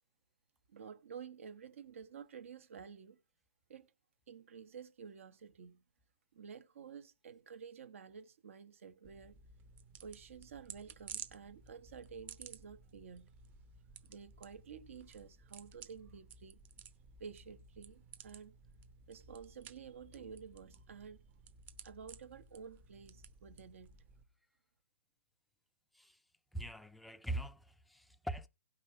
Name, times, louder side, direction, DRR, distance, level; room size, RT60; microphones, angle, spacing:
voice 1, 0.7-3.2 3.7-3.9 4.3-5.8 6.3-9.4 10.0-13.3 14.0-16.6 17.2-18.5 19.1-21.2 21.8-24.0, right 6 dB, 60° right, 1.2 m, -51 dB
sound 1, 9.0-24.2, right 6 dB, 20° right, 0.8 m, -55 dB
voice 2, 26.5-28.5, right 1 dB, ahead, 0.5 m, -42 dB
17.0 x 5.7 x 4.4 m
hypercardioid pair, 140°, 8 cm